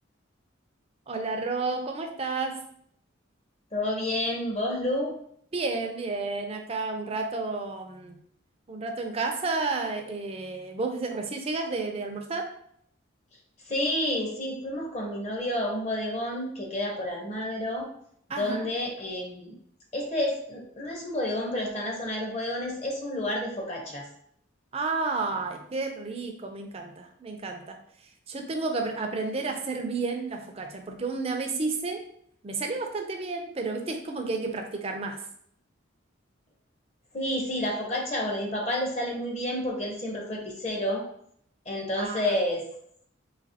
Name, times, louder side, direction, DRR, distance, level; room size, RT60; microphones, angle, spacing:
voice 1, 1.1-2.5 5.5-8.2 8.7-12.4 18.3-18.7 24.7-27.8 28.3-32.0 32.4-35.2 42.0-42.3, right 3 dB, 30° right, 4 dB, 0.4 m, -31 dB
voice 2, 3.7-5.1 13.7-17.9 18.4-19.6 19.9-24.1 37.1-41.0 41.7-42.7, left 1 dB, 35° left, 0 dB, 0.7 m, -30 dB
4.0 x 2.8 x 2.7 m, 0.67 s
head